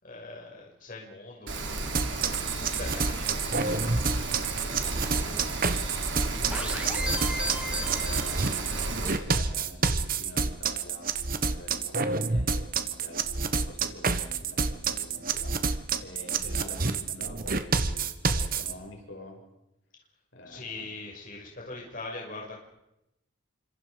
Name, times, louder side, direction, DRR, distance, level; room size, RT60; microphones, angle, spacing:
voice 1, 0.0-5.4 5.9-6.6 20.5-22.6, left 3 dB, 40° left, -1 dB, 6.5 m, -43 dB
Rain, 1.5-9.1, right 3 dB, 60° right, 3.9 m, -33 dB
sound 1, 1.9-18.7, right 4 dB, 45° right, 1.3 m, -28 dB
voice 2, 6.3-8.5 8.8-11.1 11.5-15.6 16.0-19.4 20.3-20.9, left 1 dB, 65° left, 1 dB, 6.5 m, -46 dB
sound 2, 6.5-8.9, equal, 5° right, 3.2 m, -35 dB
29.0 x 26.0 x 5.2 m, 0.86 s
head